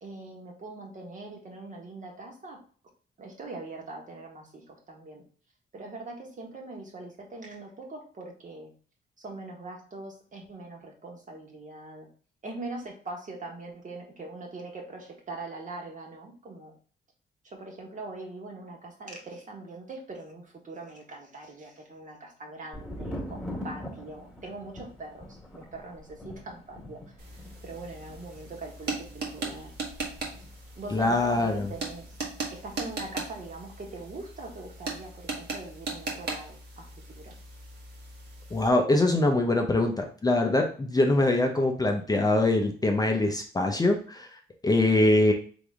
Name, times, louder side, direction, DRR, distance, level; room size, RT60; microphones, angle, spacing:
voice 1, 0.0-2.6 3.2-5.2 5.7-8.7 9.2-12.1 12.4-16.7 17.4-27.1 27.6-29.7 30.7-32.2 32.5-36.9 37.2-37.3, right 2 dB, 40° right, 1 dB, 1.5 m, -42 dB
Thunder, 22.7-32.4 32.6-33.4, equal, ahead, 1.6 m, -43 dB
sound 1, 27.2-38.7, right 3 dB, 55° right, 1.5 m, -38 dB
voice 2, 30.9-31.7 38.5-44.3 44.6-45.3, left 2 dB, 20° left, 3 dB, 0.6 m, -23 dB
4.0 x 3.4 x 3.5 m, 0.43 s
cardioid pair, 90°, 20 cm